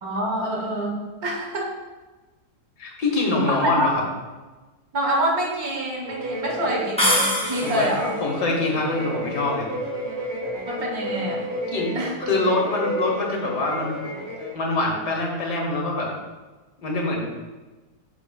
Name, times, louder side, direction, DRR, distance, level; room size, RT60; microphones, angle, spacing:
voice 1, 0.0-1.7 3.5-3.9 4.9-8.2 10.6-11.4 11.9-12.1, right 1 dB, 65° right, 0 dB, 1.7 m, -26 dB
voice 2, 2.8-4.0 7.6-7.9 8.2-9.7 11.7-11.9 12.2-14.1 14.5-16.1 16.8-17.3, left 2 dB, 90° left, -1 dB, 2.0 m, -24 dB
sound 1, 6.0-14.6, equal, 40° right, 2.0 m, -31 dB
sound 2, 7.0-8.1, equal, 5° left, 0.8 m, -23 dB
8.0 x 6.6 x 2.3 m, 1.2 s
omnidirectional pair, 1.7 m